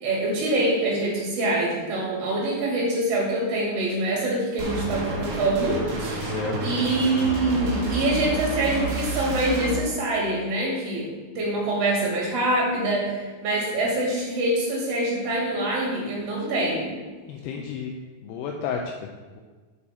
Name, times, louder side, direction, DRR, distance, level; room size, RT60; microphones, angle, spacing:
voice 1, 0.0-6.3 6.6-16.9 17.5-17.6, right 2 dB, 40° right, -4 dB, 2.7 m, -25 dB
sound 1, 4.6-9.8, right 2 dB, 85° right, 1.5 m, -29 dB
voice 2, 6.2-6.8 17.3-18.0 18.2-19.4, left 5 dB, 80° left, 1 dB, 2.5 m, -32 dB
7.1 x 6.5 x 4.3 m, 1.4 s
omnidirectional pair, 5.1 m